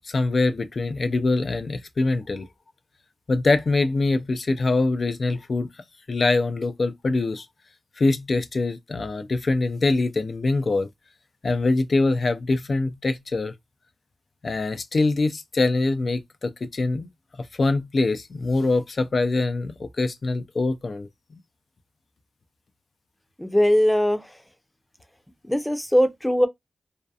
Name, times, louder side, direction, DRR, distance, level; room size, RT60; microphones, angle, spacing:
voice 1, 0.1-2.5 3.3-5.7 6.1-7.5 8.0-10.9 11.4-13.5 14.4-17.1 17.6-21.1, left 3 dB, 60° left, 0.4 m, -23 dB
voice 2, 23.4-24.2 25.5-26.5, equal, 10° left, 0.6 m, -20 dB
2.7 x 2.2 x 2.3 m
cardioid pair, 50°, 0 cm